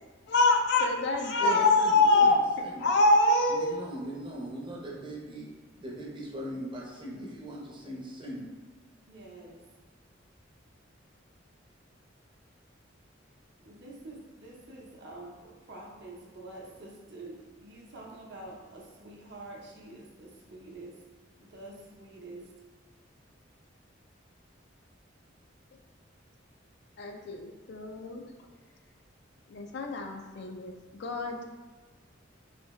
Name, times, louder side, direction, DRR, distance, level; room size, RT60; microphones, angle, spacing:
voice 1, 0.3-3.8 27.0-28.2 29.5-30.7 31.0-31.4, left 2 dB, 60° left, 3 dB, 0.4 m, -25 dB
voice 2, 1.4-2.9 3.5-5.5 5.8-8.5, right 1 dB, 25° right, -3 dB, 0.7 m, -40 dB
voice 3, 9.1-9.6 13.6-20.9 21.5-22.4, right 2 dB, 60° right, -2 dB, 0.7 m, -47 dB
3.3 x 2.7 x 3.0 m, 1.3 s
head